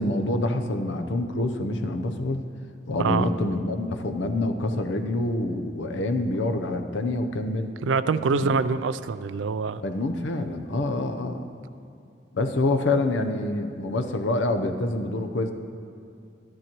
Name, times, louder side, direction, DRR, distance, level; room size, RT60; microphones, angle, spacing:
voice 1, 0.0-2.5 2.9-7.7 8.3-8.5 9.8-11.4 12.3-15.5, left 2 dB, 85° left, 5 dB, 0.7 m, -26 dB
voice 2, 3.0-3.3 7.8-9.8, right 5 dB, 90° right, 14 dB, 0.4 m, -25 dB
13.0 x 11.0 x 3.0 m, 2.5 s
head